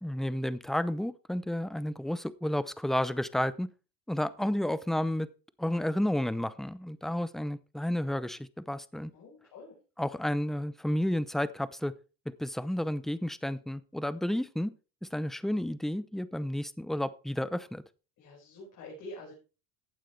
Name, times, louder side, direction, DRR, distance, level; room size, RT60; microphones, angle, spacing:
voice 1, 0.0-3.7 4.1-5.3 5.6-9.1 10.0-11.9 12.3-14.7 15.0-17.8, left 1 dB, ahead, 16 dB, 0.6 m, -31 dB
voice 2, 9.1-9.7 18.2-19.3, left 1 dB, 55° left, -3 dB, 5.2 m, -46 dB
15.0 x 9.1 x 3.3 m, 0.34 s
supercardioid pair, 100°, 37 cm